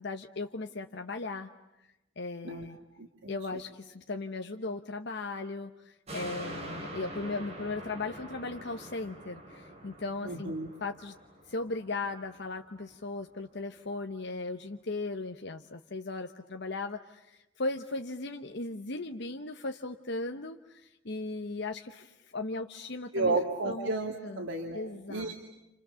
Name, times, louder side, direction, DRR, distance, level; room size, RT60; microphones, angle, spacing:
voice 1, 0.0-1.5 2.2-2.8 3.3-10.5 10.8-11.1 11.5-23.4 23.6-23.9 24.2-24.5 24.7-25.3, left 3 dB, 60° left, 5 dB, 1.0 m, -37 dB
voice 2, 2.4-3.6 10.2-10.7 23.1-25.3, right 3 dB, 80° right, 2 dB, 2.3 m, -33 dB
sound 1, 6.1-12.7 13.1-13.2, right 1 dB, 35° right, 5.5 m, -45 dB
29.5 x 29.0 x 7.0 m, 0.94 s
head